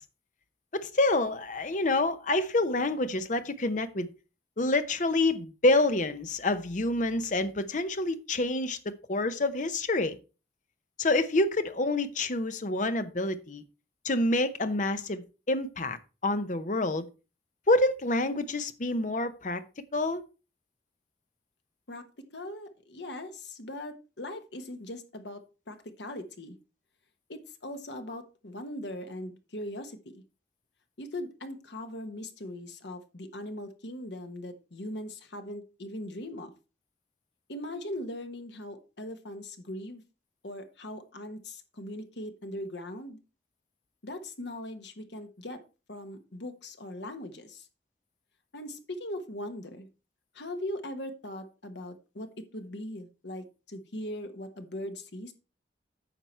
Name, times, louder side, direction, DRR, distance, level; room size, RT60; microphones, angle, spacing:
voice 1, 0.7-4.1 4.6-10.2 11.0-13.6 14.0-16.0 16.2-17.1 17.7-19.6 19.9-20.2, left 2 dB, 45° left, 0.8 m, -27 dB
voice 2, 22.3-26.6 27.3-30.2 31.0-36.5 37.5-40.0 40.4-43.2 44.0-45.6 45.9-47.7 48.5-49.9 50.3-55.3, left 1 dB, 70° left, 1.3 m, -40 dB
9.2 x 5.8 x 4.5 m
head